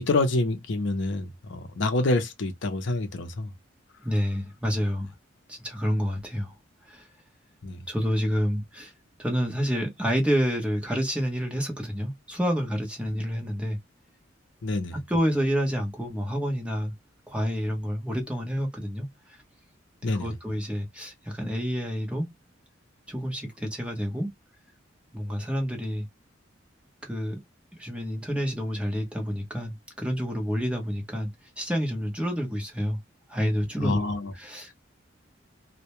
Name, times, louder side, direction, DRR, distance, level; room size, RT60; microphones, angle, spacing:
voice 1, 0.0-3.5 7.6-7.9 14.6-15.0 20.0-20.3 33.8-34.3, left 2 dB, 65° left, 0.6 m, -27 dB
voice 2, 4.0-5.1 5.5-6.5 6.9-7.1 7.9-8.9 9.2-13.8 15.1-16.9 17.3-19.4 20.0-22.3 23.1-24.3 25.1-26.1 27.0-27.4 27.8-31.3 31.6-33.0 33.3-34.1 34.4-34.7, equal, 5° right, 0.8 m, -28 dB
2.1 x 2.1 x 2.8 m
head